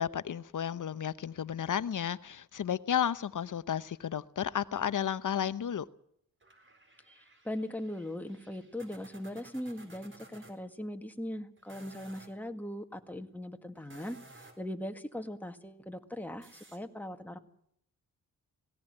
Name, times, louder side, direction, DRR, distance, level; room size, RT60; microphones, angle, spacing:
voice 1, 0.0-5.9, left 9 dB, 65° left, 0.9 m, -32 dB
sound 1, 6.4-10.5 11.6-12.3 13.7-14.7 16.4-16.8, right 2 dB, 35° right, 4.1 m, -56 dB
voice 2, 7.4-17.4, left 1 dB, 5° left, 1.8 m, -40 dB
17.5 x 17.5 x 8.9 m
cardioid pair, 85°, 33 cm